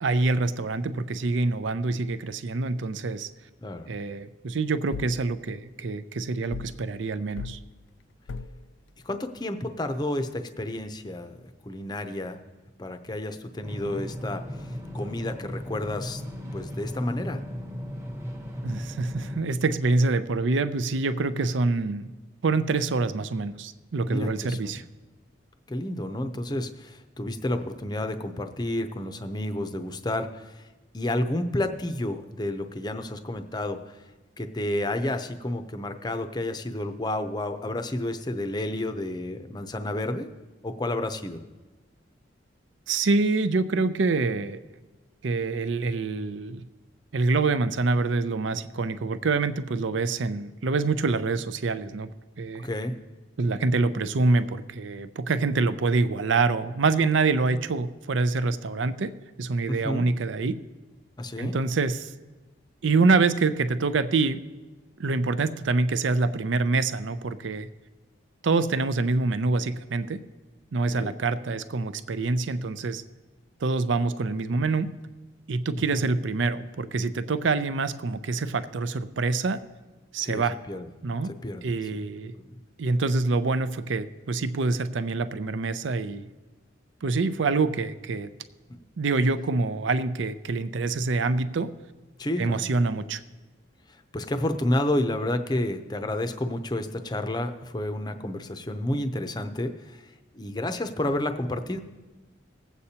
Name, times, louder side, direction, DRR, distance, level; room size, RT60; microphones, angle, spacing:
voice 1, 0.0-3.3 3.9-7.6 18.6-22.1 22.4-24.8 42.9-44.6 45.2-46.6 47.1-52.1 52.4-52.7 53.4-59.1 59.4-60.6 61.4-62.1 62.8-64.4 65.0-67.7 68.4-70.2 70.7-73.0 73.6-75.0 75.5-79.6 80.1-80.6 81.0-81.4 81.6-82.3 82.8-86.3 87.0-88.3 89.0-91.7 92.4-93.2, right 3 dB, 75° right, 12 dB, 0.5 m, -26 dB
sound 1, 4.9-5.2 6.5-6.8 7.4-7.6 8.3-8.6, left 4 dB, 75° left, 0.4 m, -37 dB
voice 2, 9.0-11.3 11.6-12.4 12.8-14.7 14.9-16.2 16.5-17.4 24.1-24.8 25.7-30.6 30.9-34.0 34.4-40.3 40.6-41.4 52.6-52.9 59.7-60.1 61.2-61.6 70.9-71.2 75.9-76.0 80.2-80.9 81.4-82.0 82.3-82.5 92.2-92.7 93.9-101.8, left 1 dB, 20° left, 8 dB, 0.6 m, -30 dB
sound 2, 13.6-19.4, equal, 15° right, 1.0 m, -36 dB
20.5 x 8.2 x 2.8 m, 1.2 s
head